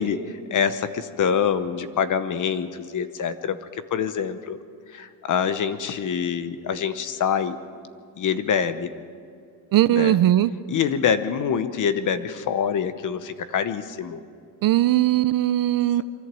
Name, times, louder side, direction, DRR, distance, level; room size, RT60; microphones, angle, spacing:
voice 1, 0.0-3.6 3.9-4.6 4.9-7.6 8.2-8.9 9.9-10.2 10.7-14.2, left 7 dB, 40° left, 12 dB, 0.9 m, -25 dB
voice 2, 9.7-10.5 14.6-16.0, right 14 dB, 50° right, 14 dB, 0.5 m, -19 dB
24.0 x 14.5 x 7.6 m, 2.2 s
cardioid pair, 175°, 46 cm